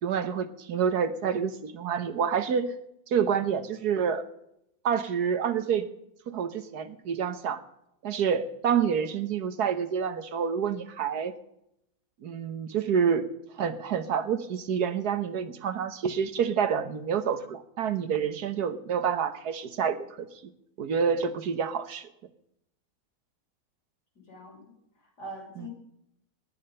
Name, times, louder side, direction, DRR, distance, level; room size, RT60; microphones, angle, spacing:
voice 1, 0.0-2.7 3.1-4.2 4.8-5.9 6.3-7.6 8.0-11.3 12.2-13.3 13.6-20.3 20.8-22.1 25.6-25.7, right 7 dB, 80° right, 11 dB, 1.6 m, -28 dB
voice 2, 24.2-25.7, equal, 90° left, -2 dB, 6.2 m, -44 dB
17.5 x 10.5 x 5.5 m, 0.79 s
omnidirectional pair, 1.7 m